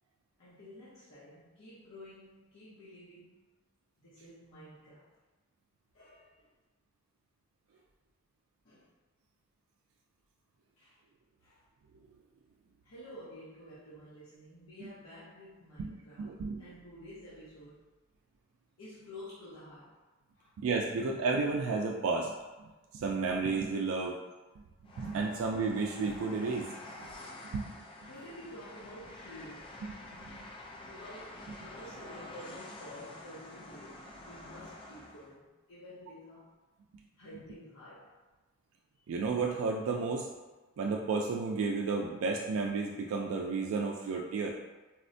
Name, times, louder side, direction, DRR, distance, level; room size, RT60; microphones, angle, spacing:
voice 1, 0.4-3.4 4.0-5.1 5.9-6.5 8.6-8.8 10.8-11.0 11.4-11.6 12.8-17.8 18.8-20.0 20.3-20.5 23.9-24.1 25.2-25.4 28.1-29.8 30.8-36.5 37.2-38.2 39.0-39.1, left 1 dB, 80° left, -10 dB, 0.8 m, -51 dB
voice 2, 15.8-16.7 20.6-22.3 22.9-24.2 25.0-26.7 27.5-27.6 30.2-30.5 39.1-40.3 40.8-44.5, right 4 dB, 90° right, 0 dB, 0.3 m, -32 dB
Train, 24.8-35.3, left 2 dB, 25° left, 0.3 m, -48 dB
4.1 x 2.1 x 2.6 m, 1.2 s
head